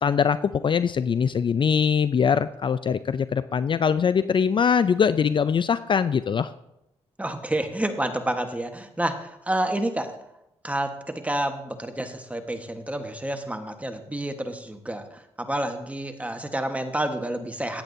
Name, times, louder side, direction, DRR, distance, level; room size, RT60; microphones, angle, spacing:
voice 1, 0.0-6.5, left 6 dB, 45° left, 14 dB, 0.4 m, -22 dB
voice 2, 7.2-10.1 10.6-17.8, right 1 dB, 10° right, 6 dB, 1.3 m, -29 dB
15.0 x 8.9 x 2.7 m, 0.85 s
cardioid pair, 65°, 12 cm